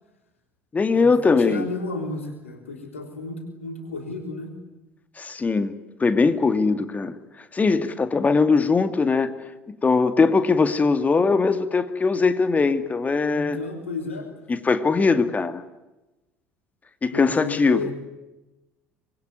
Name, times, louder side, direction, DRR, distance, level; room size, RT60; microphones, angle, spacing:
voice 1, 0.7-1.7 5.2-5.7 6.0-7.2 7.5-9.3 9.7-13.6 14.5-15.6 17.0-17.8, left 4 dB, 20° left, 10 dB, 2.3 m, -20 dB
voice 2, 1.4-4.5 13.3-14.3 17.1-17.9, left 3 dB, 80° left, 4 dB, 3.7 m, -32 dB
26.0 x 22.0 x 9.6 m, 1.0 s
figure-of-eight pair, 60°, 7 cm